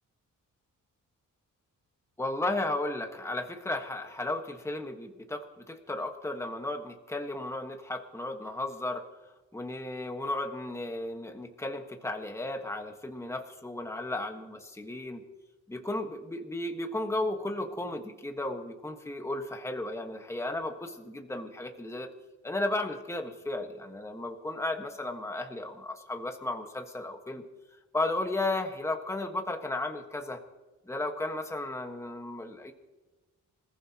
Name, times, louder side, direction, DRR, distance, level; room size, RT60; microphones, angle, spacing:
voice 1, 2.2-9.1 9.5-15.2 15.7-22.1 22.4-27.4 27.9-30.4 30.9-32.7, left 2 dB, 10° left, 4 dB, 1.3 m, -34 dB
27.0 x 14.5 x 2.9 m, 1.2 s
wide cardioid pair, 135°, 33 cm